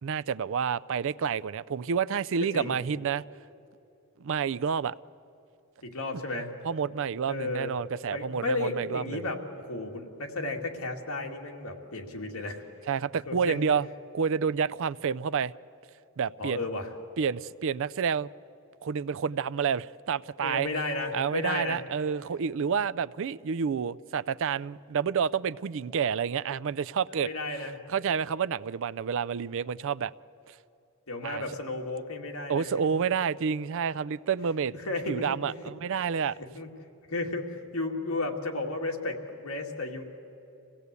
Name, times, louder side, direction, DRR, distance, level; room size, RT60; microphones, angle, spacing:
voice 1, 0.0-3.2 4.2-5.0 6.6-9.2 12.9-13.9 14.1-15.5 16.2-16.6 17.2-18.3 18.8-20.7 21.1-27.3 27.9-30.1 31.2-31.4 32.5-34.7 35.1-36.3, right 6 dB, 60° right, 0.4 m, -29 dB
voice 2, 5.8-6.5 7.3-7.7 8.1-12.6 13.3-13.6 16.4-16.9 20.4-21.8 27.2-27.8 31.1-32.9 34.8-35.4 36.4-36.7 37.1-40.0, left 2 dB, 70° left, 2.4 m, -33 dB
26.0 x 17.0 x 8.3 m
head